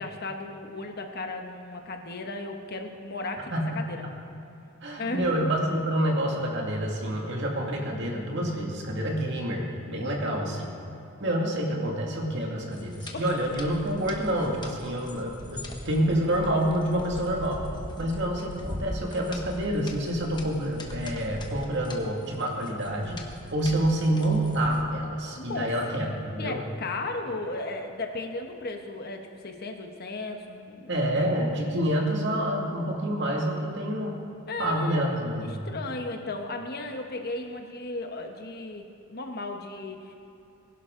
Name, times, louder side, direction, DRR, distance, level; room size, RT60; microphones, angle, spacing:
voice 1, 0.0-4.0 5.0-5.4 10.0-10.5 13.1-13.3 25.4-25.8 26.4-30.9 34.5-40.1, left 2 dB, 45° left, 4 dB, 1.1 m, -35 dB
voice 2, 3.5-3.9 4.8-10.7 11.2-17.6 18.0-23.2 23.5-26.6 30.9-34.2 34.6-35.6, right 1 dB, 50° right, -1 dB, 2.2 m, -28 dB
sound 1, 12.7-24.8, left 1 dB, 20° left, 1.1 m, -41 dB
21.0 x 11.0 x 3.8 m, 2.9 s
head